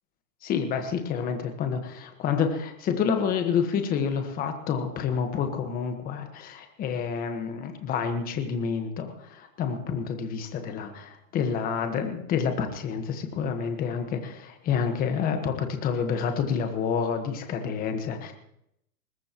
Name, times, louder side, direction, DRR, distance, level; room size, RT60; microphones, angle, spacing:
voice 1, 0.4-18.3, left 6 dB, 20° left, 6 dB, 1.4 m, -28 dB
21.0 x 19.0 x 3.0 m, 0.79 s
hypercardioid pair, 155°, 46 cm